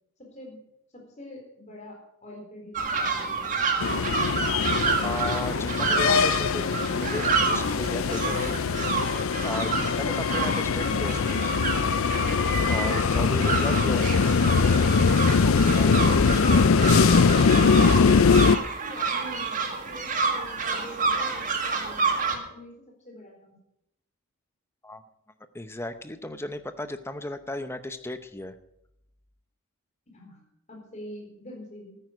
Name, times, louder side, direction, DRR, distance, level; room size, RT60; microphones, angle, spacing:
voice 1, 0.2-0.6 0.9-3.4 18.8-23.5 30.1-30.4 30.7-32.0, left 1 dB, 30° left, 0 dB, 4.0 m, -45 dB
sound 1, 2.7-22.4, right 4 dB, 35° right, 1.8 m, -29 dB
sound 2, 3.8-18.6, left 5 dB, 65° left, 0.4 m, -22 dB
voice 2, 5.0-8.6 9.4-11.4 12.7-14.1 15.7-16.3 24.8-25.0 25.5-28.5, left 1 dB, 10° left, 10 dB, 0.7 m, -35 dB
14.0 x 9.5 x 6.3 m, 0.80 s
head